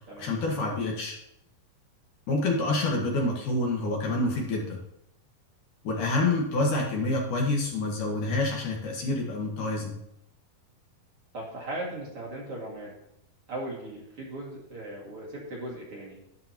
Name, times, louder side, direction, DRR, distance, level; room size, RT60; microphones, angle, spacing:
voice 1, 0.2-1.2 2.3-4.8 5.8-10.0, left 2 dB, 60° left, -1 dB, 2.8 m, -27 dB
voice 2, 11.3-12.9 13.5-16.2, right 1 dB, 40° right, -4 dB, 2.7 m, -38 dB
11.5 x 10.5 x 2.9 m, 0.79 s
omnidirectional pair, 4.4 m